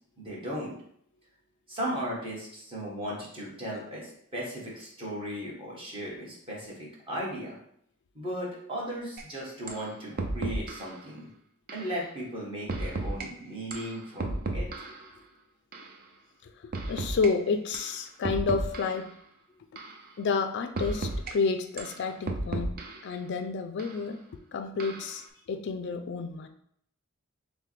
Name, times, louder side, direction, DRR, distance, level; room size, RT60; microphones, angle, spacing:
voice 1, 0.2-0.7 1.7-7.6 8.1-11.3 11.7-14.7, equal, 25° right, -5 dB, 1.5 m, -36 dB
sound 1, 9.2-9.3 9.7-9.9 10.2-10.9 11.7-11.9 12.7-13.3 13.7-15.1 15.7-15.9 16.7-17.3 17.7-17.9 18.2-19.1 19.8-20.0 20.8-21.3 21.8-23.1 23.8-24.0 24.8-25.2, right 2 dB, 45° right, 0.5 m, -33 dB
voice 2, 16.9-19.1 20.2-22.8 23.0-24.2 24.5-26.5, left 4 dB, 55° left, 7 dB, 0.4 m, -30 dB
6.5 x 2.2 x 3.2 m, 0.67 s
head